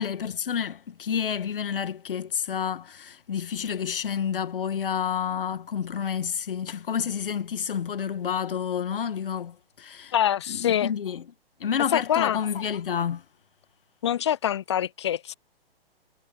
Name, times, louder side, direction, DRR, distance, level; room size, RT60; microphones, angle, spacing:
voice 1, 0.0-10.1 10.5-11.2 11.6-13.2, left 8 dB, 65° left, 1.7 m, -29 dB
voice 2, 10.1-10.9 11.9-12.4 14.0-15.3, left 10 dB, 30° left, 0.4 m, -25 dB
figure-of-eight pair, 125°, 30 cm